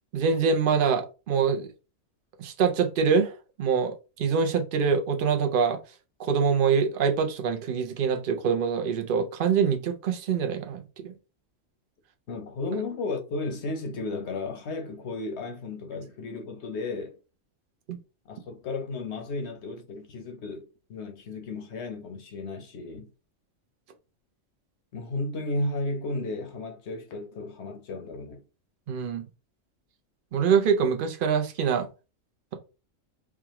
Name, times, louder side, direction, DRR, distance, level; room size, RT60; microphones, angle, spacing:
voice 1, 0.1-1.7 2.4-3.3 3.6-5.8 6.2-11.1 17.9-18.0 28.9-29.2 30.3-31.9, right 6 dB, 50° right, 0.7 m, -25 dB
voice 2, 12.3-17.2 18.2-23.1 24.9-28.4, left 2 dB, 60° left, 1.0 m, -34 dB
4.8 x 2.3 x 2.9 m
omnidirectional pair, 1.4 m